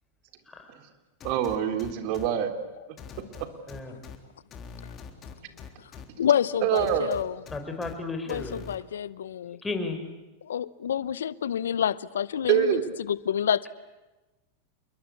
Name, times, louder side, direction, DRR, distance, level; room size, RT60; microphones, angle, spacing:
sound 1, 1.2-2.3 3.0-4.2 4.5-6.0 6.7-7.9 8.3-8.8, left 7 dB, 35° left, 3.7 m, -43 dB
voice 1, 1.2-2.5 6.6-7.1 12.5-12.8, right 10 dB, 55° right, 3.6 m, -24 dB
voice 2, 6.2-7.4 8.3-9.6 10.4-13.7, left 9 dB, 80° left, 0.8 m, -28 dB
voice 3, 7.5-8.6 9.6-10.0, left 3 dB, 10° left, 5.8 m, -33 dB
28.5 x 22.5 x 8.6 m
hypercardioid pair, 100°, 0 cm